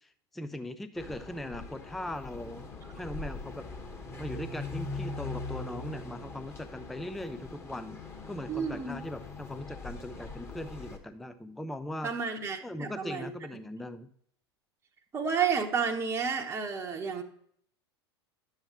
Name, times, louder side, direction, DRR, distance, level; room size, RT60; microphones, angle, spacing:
voice 1, 0.0-2.7 2.9-3.7 4.2-8.0 8.3-12.1 12.6-14.1, left 1 dB, ahead, 12 dB, 0.4 m, -39 dB
sound 1, 1.0-11.0, left 3 dB, 20° left, 1.2 m, -41 dB
voice 2, 8.5-9.0 12.0-13.3 15.1-17.2, right 6 dB, 20° right, 2 dB, 0.8 m, -31 dB
10.5 x 7.1 x 2.9 m, 0.66 s
figure-of-eight pair, 85°, 14 cm